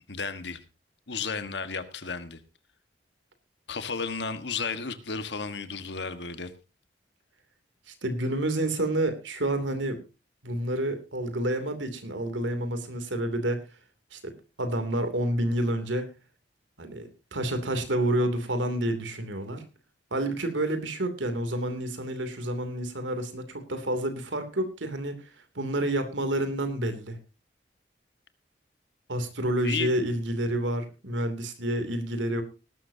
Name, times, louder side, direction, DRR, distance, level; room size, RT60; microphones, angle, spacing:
voice 1, 0.1-0.6 1.1-2.4 3.7-6.5 29.6-29.9, left 5 dB, 70° left, 10 dB, 1.6 m, -33 dB
voice 2, 7.9-10.0 10.4-13.7 14.1-14.3 14.6-16.1 16.8-19.6 20.1-25.3 25.5-27.2 29.1-32.4, right 1 dB, 85° right, 8 dB, 2.9 m, -29 dB
19.0 x 12.0 x 2.8 m, 0.29 s
head